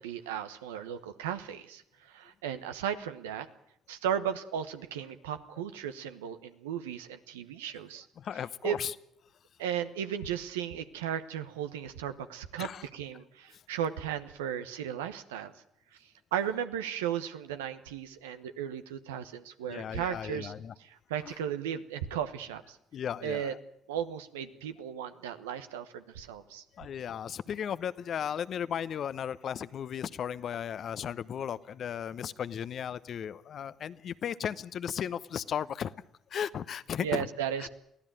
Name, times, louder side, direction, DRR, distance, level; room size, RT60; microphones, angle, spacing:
voice 1, 0.0-3.5 3.9-8.1 8.6-8.8 9.6-15.5 16.0-20.5 20.8-22.8 23.2-23.5 23.9-26.6 37.0-37.7, right 9 dB, 85° right, 9 dB, 1.1 m, -35 dB
voice 2, 8.2-8.9 12.6-12.9 19.7-20.7 21.2-21.3 22.9-23.6 26.7-35.9 36.3-37.3 37.6-37.7, left 8 dB, 55° left, 15 dB, 0.9 m, -35 dB
23.0 x 15.5 x 9.0 m, 0.76 s
hypercardioid pair, 55°, 0 cm